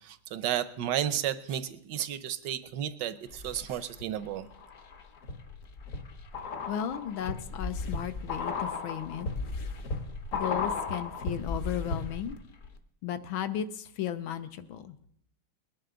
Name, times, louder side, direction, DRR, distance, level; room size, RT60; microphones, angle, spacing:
voice 1, 0.0-4.5, right 10 dB, 70° right, 12 dB, 1.1 m, -32 dB
sound 1, 3.3-4.0 4.5-12.4 12.6-12.7, left 4 dB, 50° left, 1.1 m, -35 dB
voice 2, 6.7-9.3 10.3-12.4 13.0-14.9, left 10 dB, 75° left, 11 dB, 1.5 m, -35 dB
21.0 x 10.5 x 3.8 m, 0.70 s
omnidirectional pair, 2.3 m